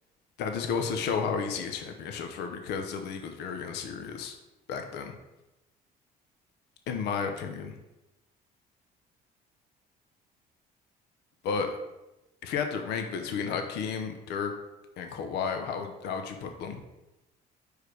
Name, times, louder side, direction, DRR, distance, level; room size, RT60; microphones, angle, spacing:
voice 1, 0.4-4.3 4.7-5.2 6.9-7.8 11.4-11.8 12.4-14.5 15.0-16.8, left 6 dB, 80° left, 5 dB, 0.8 m, -32 dB
4.9 x 4.8 x 4.9 m, 0.97 s
cardioid pair, 110°, 17 cm